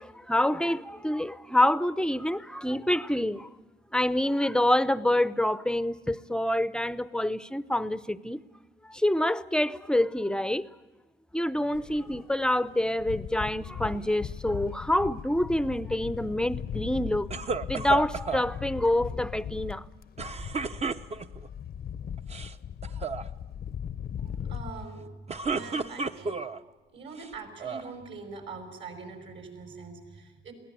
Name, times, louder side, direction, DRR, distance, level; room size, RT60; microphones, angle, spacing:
voice 1, 0.0-3.6 3.9-8.4 8.8-10.7 11.3-17.3 17.7-19.8, left 1 dB, 5° left, 0.6 m, -27 dB
sound 1, 11.7-24.9, left 9 dB, 50° left, 0.7 m, -39 dB
sound 2, 17.3-18.5 20.2-21.5 22.2-22.5 22.8-23.2 25.1-26.6 27.2-27.9, right 5 dB, 30° right, 0.8 m, -32 dB
voice 2, 24.2-25.2 25.5-26.6 26.9-30.5, right 4 dB, 70° right, 5.8 m, -43 dB
22.0 x 17.0 x 9.2 m
cardioid pair, 90°, 20 cm